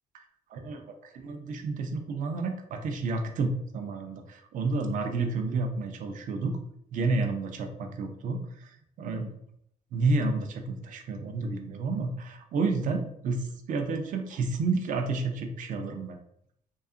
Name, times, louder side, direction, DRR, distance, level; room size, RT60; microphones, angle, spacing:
voice 1, 0.5-6.6 6.9-8.7 9.0-9.3 9.9-16.2, right 3 dB, 50° right, 5 dB, 0.5 m, -30 dB
2.7 x 2.3 x 2.4 m, 0.70 s
cardioid pair, 110°, 17 cm